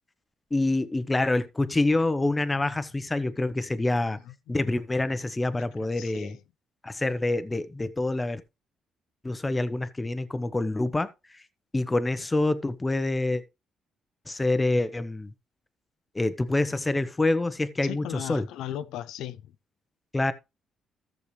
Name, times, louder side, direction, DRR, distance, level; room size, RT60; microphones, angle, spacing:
voice 1, 0.5-4.2 4.5-6.3 6.8-8.4 9.2-11.1 11.7-13.4 14.3-15.3 16.1-18.4 20.1-20.3, left 2 dB, 20° left, 0.9 m, -26 dB
voice 2, 5.6-6.4 17.8-19.5, left 12 dB, 90° left, 0.5 m, -37 dB
14.0 x 6.6 x 3.2 m
cardioid pair, 90°, 0 cm